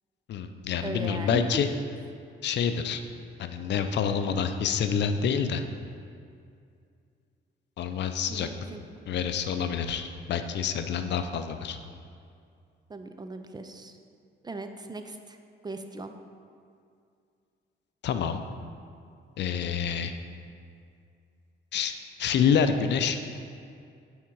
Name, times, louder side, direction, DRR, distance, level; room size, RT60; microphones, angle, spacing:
voice 1, 0.3-1.7 2.4-3.0 3.4-5.6 7.8-8.5 9.1-11.8 18.0-18.4 19.4-20.1 21.7-23.2, left 7 dB, 60° left, 8 dB, 0.5 m, -27 dB
voice 2, 0.8-1.5 8.3-8.8 12.9-14.0 14.4-15.4 15.6-16.1, right 3 dB, 20° right, 7 dB, 0.4 m, -38 dB
8.6 x 3.6 x 4.6 m, 2.3 s
cardioid pair, 90°, 20 cm